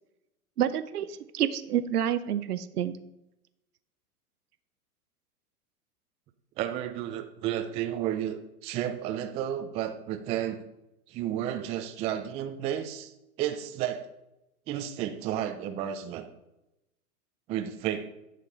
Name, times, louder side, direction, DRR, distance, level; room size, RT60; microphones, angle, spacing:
voice 1, 0.6-3.0, right 10 dB, 85° right, 12 dB, 0.8 m, -28 dB
voice 2, 6.6-10.6 11.1-13.1 13.4-14.1 14.7-16.2 17.5-18.1, right 11 dB, 15° right, 7 dB, 0.3 m, -32 dB
11.0 x 6.7 x 3.9 m, 0.90 s
hypercardioid pair, 115°, 45 cm